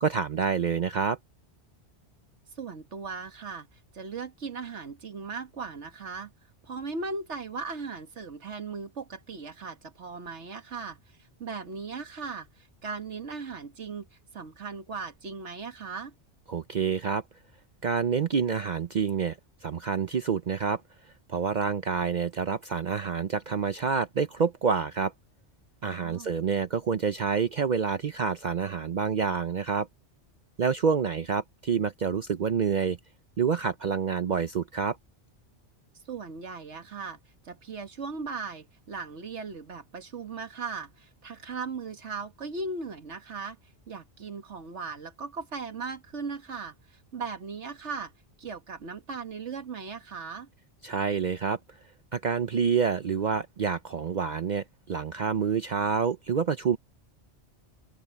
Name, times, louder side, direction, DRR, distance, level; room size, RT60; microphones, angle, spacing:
voice 1, 0.0-1.2 16.5-17.2 17.8-19.4 19.6-20.8 21.3-25.1 25.8-29.9 30.6-33.0 33.4-35.0 50.8-51.6 52.1-56.8, right 6 dB, 50° right, 0.7 m, -27 dB
voice 2, 2.6-6.3 6.6-14.1 14.3-16.1 26.0-26.4 36.1-37.2 37.4-43.6 43.9-48.1 48.4-50.5, right 4 dB, 90° right, 1.9 m, -38 dB
omnidirectional pair, 1.1 m